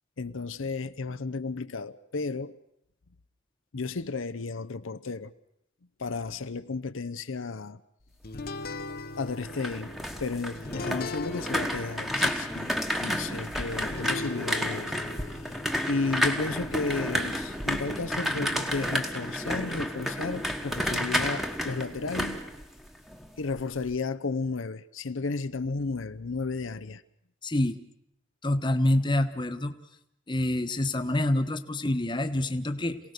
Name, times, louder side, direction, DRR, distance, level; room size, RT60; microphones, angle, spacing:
voice 1, 0.2-2.6 3.7-5.3 6.0-7.8 8.5-8.6 9.2-9.9 10.2-12.7 13.0-15.1 15.3-15.6 15.9-22.4 23.4-27.0, left 4 dB, 90° left, 0.8 m, -33 dB
sound 1, 8.2-18.9, left 3 dB, 50° left, 0.9 m, -41 dB
sound 2, 9.3-23.3 23.6-24.0, equal, ahead, 1.3 m, -31 dB
voice 2, 27.4-27.8 28.4-29.7 30.3-33.0, left 1 dB, 25° left, 1.2 m, -26 dB
27.0 x 18.0 x 6.7 m
head